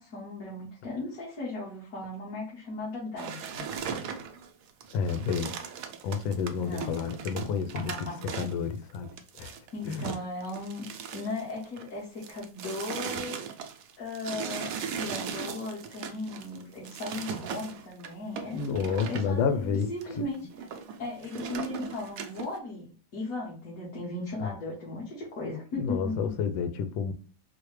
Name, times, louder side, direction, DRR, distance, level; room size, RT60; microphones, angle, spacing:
voice 1, 0.0-3.7 6.6-7.0 7.7-8.2 9.7-10.8 11.1-13.5 14.0-18.8 19.0-20.5 21.0-22.9 23.1-26.3, left 2 dB, 50° left, 1.4 m, -37 dB
sound 1, 3.2-11.9 12.2-19.3 19.8-20.0 20.3-22.6, right 7 dB, 90° right, 0.7 m, -38 dB
voice 2, 4.9-5.5 6.0-9.5 9.8-10.1 18.5-20.3 24.4-24.5 25.7-27.1, left 6 dB, 90° left, 1.3 m, -30 dB
4.5 x 2.1 x 3.1 m
omnidirectional pair, 2.1 m